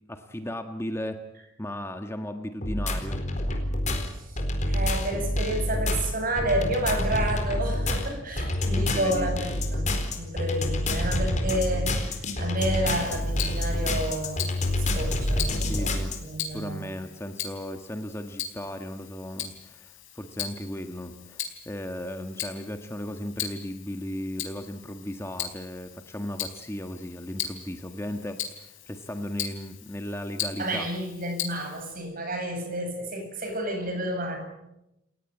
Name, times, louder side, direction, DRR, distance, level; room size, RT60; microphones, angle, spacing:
voice 1, 0.1-1.2 1.6-3.2 8.7-9.4 15.7-16.2 16.5-30.9, left 1 dB, 15° left, 6 dB, 1.4 m, -36 dB
sound 1, 2.6-16.2, left 1 dB, 35° left, 4.3 m, -27 dB
voice 2, 4.6-9.9 10.2-14.4 14.8-15.9 16.2-16.8 30.6-34.4, right 1 dB, 45° right, 4 dB, 7.7 m, -30 dB
Tick-tock, 12.9-31.9, left 9 dB, 70° left, 4.3 m, -39 dB
29.5 x 17.0 x 9.0 m, 0.88 s
head